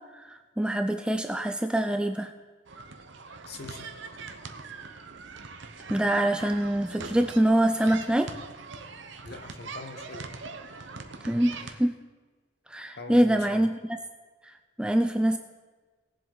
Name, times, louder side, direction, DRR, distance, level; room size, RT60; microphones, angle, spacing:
voice 1, 0.1-2.3 5.9-8.3 11.2-12.0 12.7-14.0 14.8-15.4, right 1 dB, 5° right, 6 dB, 0.4 m, -25 dB
sound 1, 2.7-11.7, right 4 dB, 60° right, 0.9 m, -42 dB
voice 2, 3.5-3.9 9.2-10.3 13.0-13.6, left 3 dB, 50° left, 6 dB, 1.2 m, -42 dB
19.0 x 7.5 x 3.9 m, 1.4 s
head